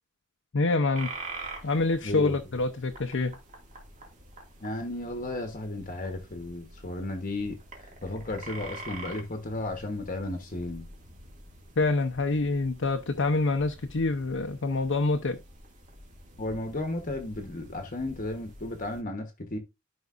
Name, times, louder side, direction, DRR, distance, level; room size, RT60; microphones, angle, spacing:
voice 1, 0.5-1.1 1.6-3.3 11.8-15.4, left 3 dB, 65° left, 0.7 m, -26 dB
sound 1, 0.9-19.0, right 2 dB, 40° right, 2.1 m, -46 dB
voice 2, 2.0-2.3 4.6-7.6 8.0-10.9 16.4-19.6, left 2 dB, 40° left, 1.0 m, -34 dB
12.0 x 5.2 x 2.5 m
head